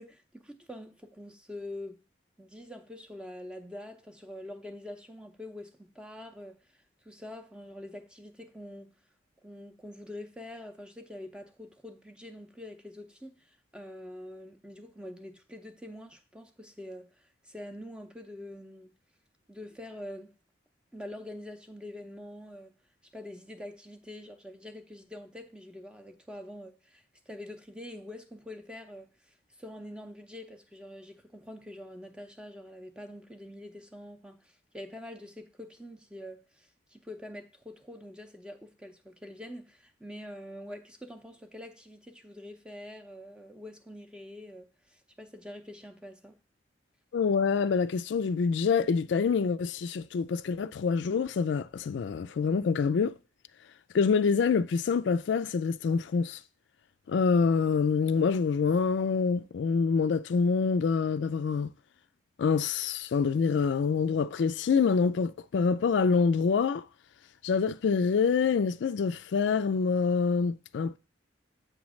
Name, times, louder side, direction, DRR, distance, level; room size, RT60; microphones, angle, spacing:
voice 1, 0.0-2.0 2.4-8.9 9.4-18.9 19.5-20.3 20.9-22.7 23.1-46.4, left 1 dB, 5° right, 0.6 m, -45 dB
voice 2, 47.1-53.1 53.9-56.4 57.1-61.7 62.4-66.8 67.4-71.0, left 5 dB, 70° left, 0.3 m, -26 dB
7.8 x 3.1 x 6.1 m
head